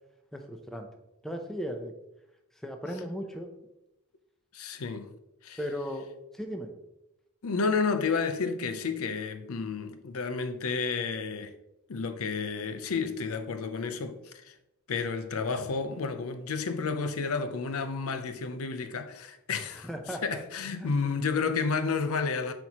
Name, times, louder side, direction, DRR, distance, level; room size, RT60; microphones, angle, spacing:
voice 1, 0.3-0.9 1.2-1.9 2.6-3.5 5.6-6.1 6.3-6.7 19.8-20.4 20.8-20.9, equal, ahead, 0.6 m, -36 dB
voice 2, 4.5-5.1 5.4-5.6 7.4-11.5 11.9-14.6 14.9-22.5, left 5 dB, 80° left, 0.6 m, -31 dB
7.6 x 4.5 x 2.9 m
head